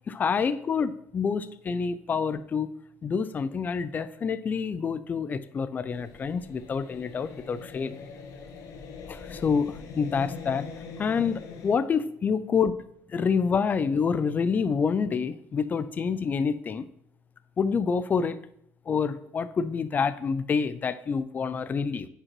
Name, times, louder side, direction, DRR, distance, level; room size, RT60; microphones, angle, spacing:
voice 1, 0.1-8.0 9.1-10.7 11.0-12.8 13.1-16.8 17.6-18.5 18.9-22.1, left 6 dB, 25° left, 14 dB, 0.4 m, -27 dB
sound 1, 5.9-11.8, left 5 dB, 60° left, 1.1 m, -42 dB
9.6 x 5.2 x 3.1 m, 0.71 s
cardioid pair, 130°, 7 cm